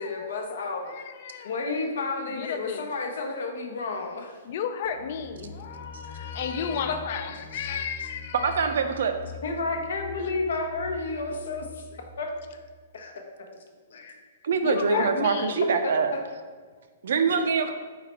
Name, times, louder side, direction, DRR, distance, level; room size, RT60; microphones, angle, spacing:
voice 1, 0.0-1.0 1.4-4.4 6.1-6.3 6.7-7.0 7.5-8.1 9.4-12.3 12.9-13.1 13.9-14.1 14.9-15.1 17.3-17.4, left 3 dB, 75° left, 3 dB, 0.8 m, -31 dB
voice 2, 2.5-2.8 4.5-8.3 14.6-15.5, left 7 dB, 50° left, 8 dB, 0.4 m, -32 dB
sound 1, 4.8-12.6, left 2 dB, 30° right, 0.7 m, -44 dB
voice 3, 8.4-9.1 14.4-16.1 17.0-17.7, right 5 dB, 75° right, 7 dB, 0.5 m, -24 dB
4.0 x 3.1 x 4.3 m, 1.5 s
hypercardioid pair, 145°, 0 cm